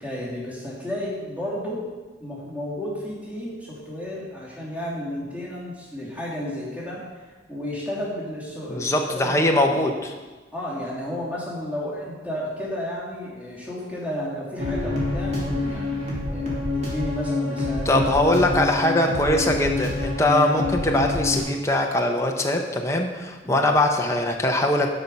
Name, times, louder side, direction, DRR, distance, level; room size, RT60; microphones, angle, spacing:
voice 1, 0.0-1.9 2.2-7.0 7.5-9.8 10.5-18.2 23.4-23.7, left 1 dB, 5° right, -7 dB, 2.9 m, -32 dB
voice 2, 8.7-10.1 17.8-24.9, left 1 dB, 15° left, 2 dB, 0.8 m, -22 dB
sound 1, 14.6-21.4, left 2 dB, 35° right, 2.6 m, -27 dB
12.0 x 5.6 x 5.3 m, 1.3 s
head